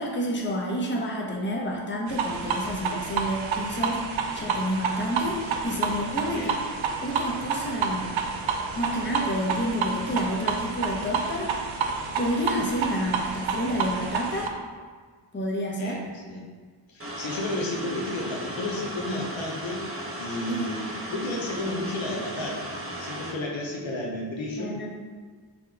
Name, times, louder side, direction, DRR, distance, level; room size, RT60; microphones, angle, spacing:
voice 1, 0.0-6.5 7.0-8.2 8.7-11.5 12.2-14.5 15.3-16.0 20.5-20.8 24.5-24.9, equal, 25° left, -2 dB, 0.9 m, -29 dB
sound 1, 2.1-14.5, right 5 dB, 80° right, 0.5 m, -29 dB
voice 2, 15.7-16.5 16.9-19.8 20.2-22.7 23.0-24.8, left 1 dB, 75° left, -1 dB, 0.8 m, -32 dB
sound 2, 17.0-23.3, right 1 dB, 30° right, 0.9 m, -36 dB
5.3 x 2.3 x 3.4 m, 1.5 s
cardioid pair, 40°, 46 cm